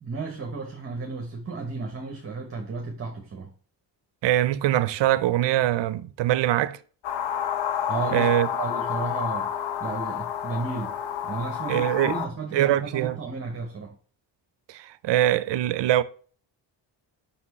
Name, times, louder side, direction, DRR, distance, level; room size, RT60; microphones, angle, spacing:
voice 1, 0.0-3.5 7.9-9.5 9.8-10.9 11.2-13.9, right 4 dB, 30° right, 1.0 m, -33 dB
voice 2, 4.2-6.8 8.1-8.5 11.7-12.2 12.5-13.2 14.7-16.0, right 13 dB, 70° right, 0.6 m, -23 dB
sound 1, 7.0-12.3, left 9 dB, 85° left, 0.8 m, -29 dB
5.4 x 4.3 x 4.2 m
cardioid pair, 105°, 46 cm